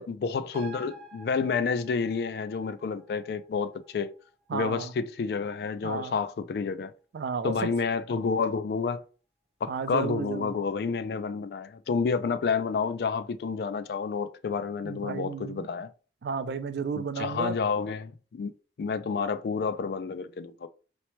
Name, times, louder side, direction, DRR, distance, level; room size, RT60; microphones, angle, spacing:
voice 1, 0.0-4.1 4.5-6.9 7.4-9.0 9.6-15.9 17.0-18.5 18.8-20.7, left 5 dB, 60° left, 0.3 m, -30 dB
sound 1, 0.5-7.5 7.8-7.9, right 1 dB, 35° right, 0.7 m, -51 dB
voice 2, 4.5-4.9 5.8-6.2 7.1-7.5 9.7-10.5 14.8-15.7 16.2-17.5, right 5 dB, 70° right, 0.4 m, -33 dB
2.8 x 2.1 x 3.0 m
head